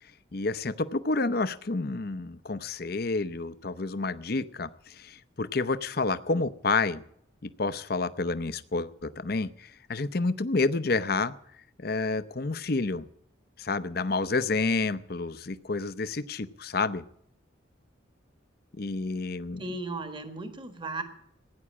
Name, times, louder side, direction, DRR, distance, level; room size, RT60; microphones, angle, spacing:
voice 1, 0.3-4.7 5.0-7.0 7.6-9.5 9.9-11.3 11.8-13.1 13.6-17.0 18.8-19.6, left 3 dB, 50° left, 14 dB, 0.7 m, -29 dB
voice 2, 19.6-21.0, right 2 dB, 25° right, 8 dB, 1.6 m, -35 dB
16.0 x 9.7 x 8.6 m, 0.68 s
head